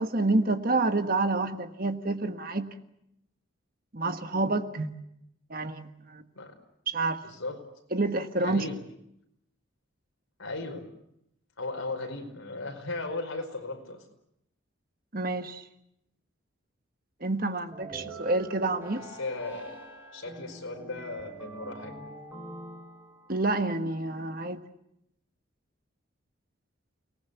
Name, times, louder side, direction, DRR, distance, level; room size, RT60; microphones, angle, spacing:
voice 1, 0.0-2.7 3.9-5.0 5.5-6.2 6.9-7.2 7.9-8.6 15.1-15.7 17.2-19.0 23.3-24.6, right 2 dB, 45° right, 8 dB, 1.4 m, -28 dB
voice 2, 7.2-7.6 8.4-8.8 10.4-10.8 11.6-14.0 19.0-19.7 20.1-21.9, left 2 dB, 80° left, 4 dB, 5.0 m, -36 dB
sound 1, 17.7-23.4, right 2 dB, 10° right, 5.7 m, -44 dB
29.5 x 19.5 x 8.3 m, 0.78 s
head